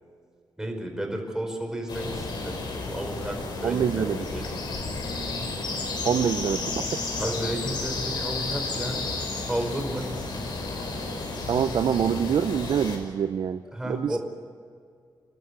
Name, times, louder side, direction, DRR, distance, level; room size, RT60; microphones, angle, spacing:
voice 1, 0.6-2.6 2.9-4.5 7.2-9.0 9.3-10.1 13.7-14.2, right 1 dB, 10° right, 3 dB, 5.0 m, -32 dB
sound 1, 1.9-13.0, left 3 dB, 70° left, 5.6 m, -32 dB
voice 2, 3.6-4.2 6.0-7.0 11.5-13.6 13.9-14.2, right 8 dB, 70° right, 10 dB, 0.6 m, -25 dB
27.5 x 13.0 x 9.5 m, 2.1 s
wide cardioid pair, 125°, 8 cm